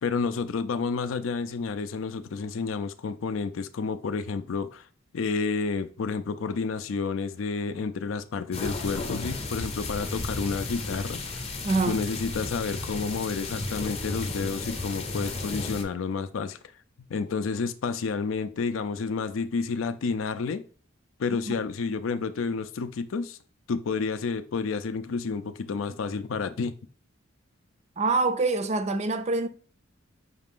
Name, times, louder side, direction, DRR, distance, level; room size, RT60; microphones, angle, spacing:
voice 1, 0.0-4.8 5.1-11.2 11.9-16.6 17.1-20.6 21.2-23.4 23.7-26.7, left 4 dB, 75° left, 0.4 m, -30 dB
sound 1, 8.5-15.8, left 3 dB, 30° left, 0.7 m, -34 dB
voice 2, 11.6-12.0 21.5-21.6 28.0-29.5, right 3 dB, 35° right, 0.4 m, -25 dB
5.7 x 2.5 x 3.5 m
head